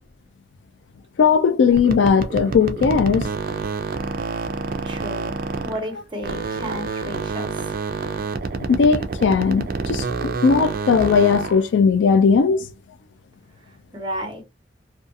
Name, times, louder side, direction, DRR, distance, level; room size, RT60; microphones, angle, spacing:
voice 1, 1.2-3.3 8.5-12.6, left 5 dB, 70° left, 0.3 m, -18 dB
sound 1, 1.7-5.9 6.2-11.6, right 4 dB, 50° right, 0.4 m, -28 dB
voice 2, 4.8-5.3 5.6-7.5 13.9-14.4, equal, 25° right, 0.9 m, -32 dB
2.4 x 2.3 x 2.6 m
head